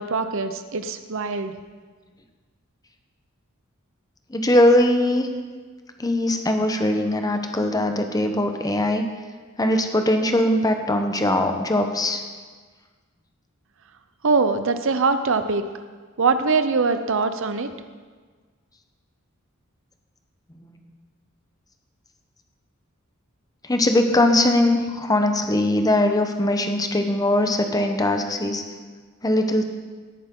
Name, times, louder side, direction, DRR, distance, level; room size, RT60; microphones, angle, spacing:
voice 1, 0.0-1.5 14.2-15.6 16.2-17.7, right 4 dB, 65° right, 10 dB, 0.8 m, -22 dB
voice 2, 4.3-5.3 6.0-9.0 9.6-12.2 23.7-28.6 29.2-29.6, left 1 dB, 20° left, 5 dB, 0.9 m, -21 dB
17.0 x 8.8 x 3.8 m, 1.5 s
head